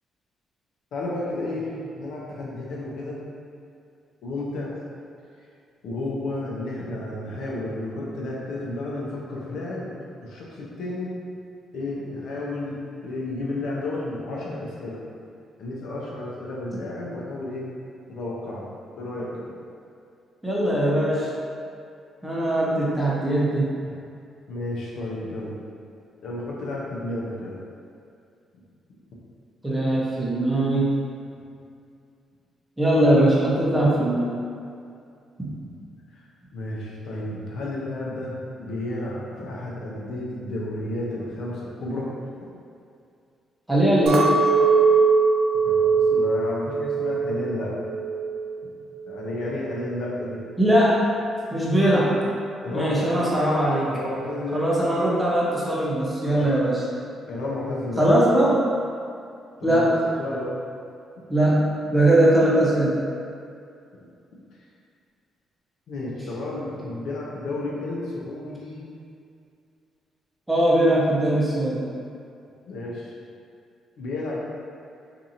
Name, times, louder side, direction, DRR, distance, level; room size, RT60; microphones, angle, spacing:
voice 1, 0.9-3.2 4.2-4.7 5.8-9.9 10.2-11.1 11.7-12.8 13.0-15.0 15.6-17.6 18.1-18.7 18.9-19.5 24.5-25.6 26.2-27.6 36.5-42.1 45.6-47.7 48.6-48.7 49.1-50.4 52.6-54.7 56.4-56.6 57.3-58.1 59.6-60.6 65.9-68.9 72.7-73.1 74.0-74.3, left 2 dB, 75° left, -5 dB, 0.6 m, -32 dB
voice 2, 20.4-21.3 22.2-23.7 29.6-30.9 32.8-34.3 35.4-35.5 43.7-44.3 50.6-51.0 51.5-52.1 52.7-53.9 54.5-56.8 58.0-58.6 59.6-59.9 61.3-63.0 70.5-71.8, right 1 dB, 10° right, -6 dB, 0.7 m, -20 dB
Chink clink, 44.1-48.5 48.8-49.4, right 4 dB, 70° right, 0.5 m, -21 dB
2.8 x 2.6 x 2.6 m, 2.4 s
cardioid pair, 90°, 0 cm